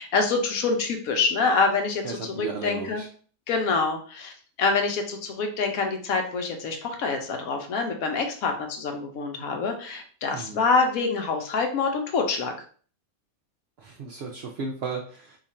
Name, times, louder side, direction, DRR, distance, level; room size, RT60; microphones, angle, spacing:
voice 1, 0.0-3.0 3.5-4.3 4.6-12.5, left 4 dB, 75° left, 4 dB, 1.1 m, -26 dB
voice 2, 2.0-3.1 10.3-10.6 13.8-15.4, right 4 dB, 65° right, 0 dB, 0.6 m, -35 dB
2.8 x 2.4 x 4.1 m, 0.44 s
omnidirectional pair, 1.5 m